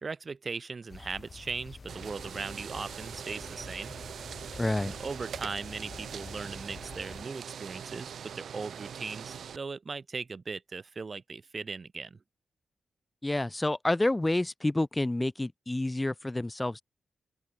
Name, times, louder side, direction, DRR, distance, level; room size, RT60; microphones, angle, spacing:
voice 1, 0.0-4.0 4.8-12.2, right 4 dB, 35° right, 1.6 m, -39 dB
sound 1, 0.9-7.2, left 4 dB, 35° left, 1.2 m, -48 dB
sound 2, 1.9-9.6, right 8 dB, 90° right, 1.6 m, -42 dB
voice 2, 4.6-4.9 13.2-16.8, left 2 dB, 15° left, 0.7 m, -29 dB
open air
wide cardioid pair, 155°, 0 cm